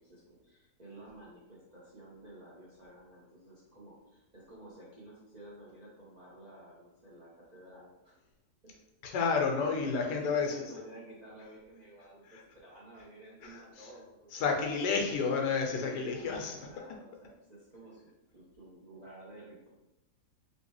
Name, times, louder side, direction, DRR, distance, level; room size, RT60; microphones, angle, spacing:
voice 1, 0.0-8.1 8.6-8.7 9.5-14.5 15.7-19.7, right 1 dB, 45° right, -7 dB, 0.6 m, -52 dB
voice 2, 9.0-10.6 12.2-12.4 13.4-13.9 14.3-16.6, left 5 dB, 90° left, 2 dB, 1.3 m, -31 dB
3.2 x 2.8 x 3.1 m, 0.93 s
omnidirectional pair, 1.7 m